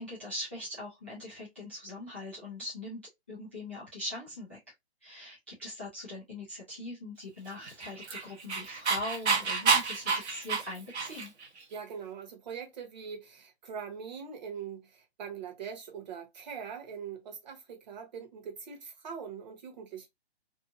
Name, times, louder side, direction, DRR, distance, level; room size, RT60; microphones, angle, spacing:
voice 1, 0.0-3.0 3.3-4.6 5.0-11.3, left 2 dB, 10° left, 0.3 m, -41 dB
Dog, 7.6-11.5, right 5 dB, 75° right, 0.9 m, -29 dB
voice 2, 11.7-20.1, right 7 dB, 40° right, 1.0 m, -42 dB
2.6 x 2.5 x 2.5 m
hypercardioid pair, 150°, 33 cm